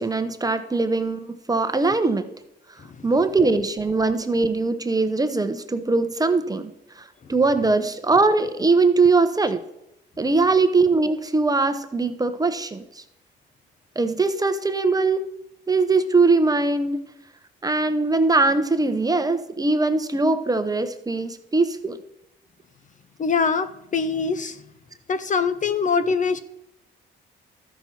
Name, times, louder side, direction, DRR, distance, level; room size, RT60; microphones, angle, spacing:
voice 1, 0.0-2.3 3.0-6.7 7.0-9.6 10.2-13.0 14.0-15.3 15.7-17.0 17.6-22.0 26.0-26.1, right 3 dB, 20° right, 9 dB, 0.8 m, -21 dB
voice 2, 23.2-24.6 25.1-26.4, left 5 dB, 40° left, 12 dB, 0.7 m, -23 dB
13.0 x 6.0 x 4.3 m, 0.83 s
cardioid pair, 90°, 20 cm